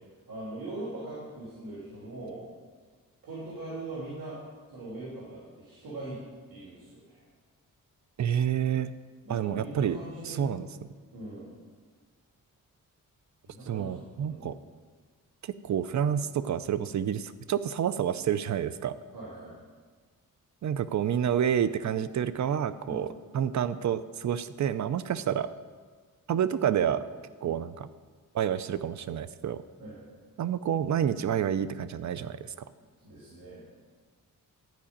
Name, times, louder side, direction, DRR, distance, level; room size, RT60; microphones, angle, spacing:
voice 1, 0.3-2.4 3.2-4.4 4.7-6.2 6.5-7.2 9.2-10.6 11.1-11.5 13.4-13.9 14.2-14.5 19.1-19.6 22.8-23.0 27.4-27.6 29.7-30.1 33.0-33.6, right 2 dB, 80° right, -7 dB, 3.2 m, -41 dB
voice 2, 8.2-8.9 9.3-10.0 10.2-10.7 13.7-14.6 15.4-18.9 20.6-25.5 26.3-27.0 27.4-27.9 28.3-29.6 30.4-32.5, right 9 dB, 55° right, 13 dB, 0.6 m, -29 dB
12.0 x 5.0 x 8.6 m, 1.5 s
wide cardioid pair, 110°, 34 cm